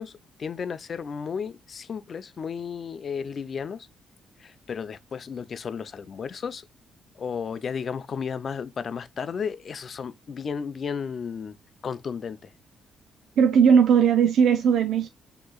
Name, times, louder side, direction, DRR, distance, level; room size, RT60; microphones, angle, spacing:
voice 1, 0.0-3.9 4.4-6.6 7.2-11.6 11.8-12.5, left 6 dB, 45° left, 0.4 m, -33 dB
voice 2, 13.4-15.1, right 7 dB, 70° right, 0.4 m, -18 dB
6.2 x 2.9 x 2.3 m
cardioid pair, 90°, 0 cm